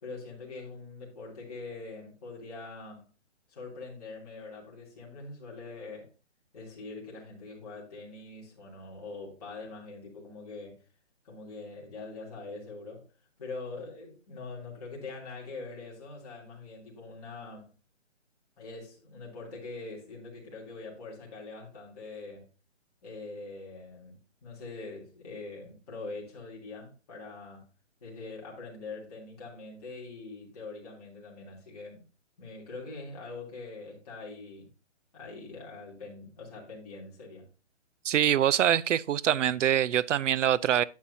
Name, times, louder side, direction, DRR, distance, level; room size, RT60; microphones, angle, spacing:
voice 1, 0.0-3.1 3.5-6.1 6.5-10.8 11.2-13.0 13.4-17.7 18.6-22.5 23.0-27.7 28.0-32.0 32.4-34.7 35.1-37.5, left 3 dB, 30° left, 3.1 m, -43 dB
voice 2, 38.0-40.8, right 10 dB, 80° right, 0.5 m, -24 dB
10.5 x 7.4 x 2.7 m
hypercardioid pair, 175°, 36 cm